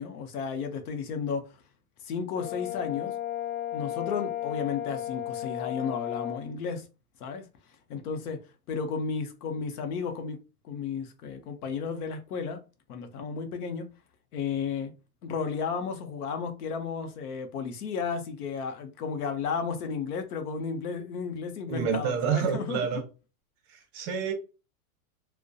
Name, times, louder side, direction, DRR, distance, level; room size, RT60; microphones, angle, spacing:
voice 1, 0.0-1.5 2.0-3.1 3.7-6.9 7.2-7.5 7.9-8.4 8.7-10.4 10.6-12.6 12.9-13.9 14.3-14.9 15.2-23.0, left 5 dB, 85° left, 0.7 m, -33 dB
Brass instrument, 2.3-6.4, left 12 dB, 45° left, 0.7 m, -34 dB
voice 2, 21.7-23.0 23.7-24.3, right 7 dB, 40° right, 0.6 m, -28 dB
2.3 x 2.1 x 2.6 m
supercardioid pair, 130°, 44 cm